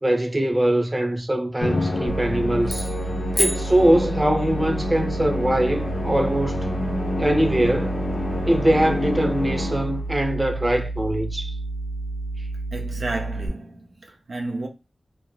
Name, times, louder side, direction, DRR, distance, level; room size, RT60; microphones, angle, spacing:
voice 1, 0.0-2.9 3.4-6.7 7.2-8.0 8.5-11.6, right 1 dB, 25° right, 0.7 m, -22 dB
Musical instrument, 1.6-10.1, left 1 dB, 90° left, 0.8 m, -28 dB
sound 1, 2.1-13.5, right 2 dB, 40° left, 0.9 m, -30 dB
sound 2, 2.6-4.6, left 1 dB, 15° left, 0.6 m, -30 dB
voice 2, 12.7-14.7, right 2 dB, 80° right, 0.4 m, -32 dB
3.0 x 2.4 x 2.3 m
wide cardioid pair, 60°, 0 cm